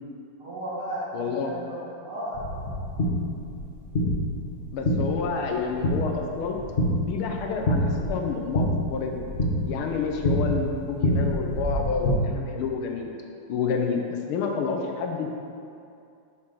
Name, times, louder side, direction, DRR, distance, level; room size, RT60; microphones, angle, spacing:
voice 1, 0.4-2.7, right 1 dB, 80° right, -9 dB, 2.8 m, -34 dB
voice 2, 1.1-1.5 4.7-6.6 7.1-9.2 9.7-13.1 13.5-15.3, left 5 dB, 75° left, 2 dB, 1.6 m, -29 dB
sound 1, 2.3-12.1, left 1 dB, 40° left, 1.0 m, -27 dB
5.9 x 5.0 x 5.8 m, 2.5 s
omnidirectional pair, 2.4 m